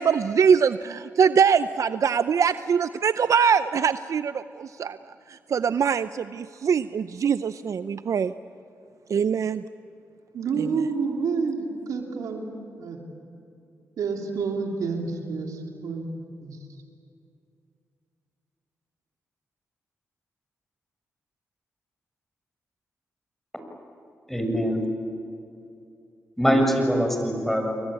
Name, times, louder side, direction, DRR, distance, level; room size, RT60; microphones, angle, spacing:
voice 1, 0.0-5.0 5.3-8.3 9.1-9.6 10.6-10.7, right 7 dB, 65° right, 13 dB, 0.6 m, -23 dB
voice 2, 10.3-12.5 12.8-13.0 14.0-16.1 16.4-16.6, right 5 dB, 80° right, 2 dB, 3.2 m, -29 dB
voice 3, 24.3-24.8 26.4-27.8, equal, 5° left, 4 dB, 7.1 m, -23 dB
29.0 x 22.0 x 8.8 m, 2.5 s
supercardioid pair, 50°, 6 cm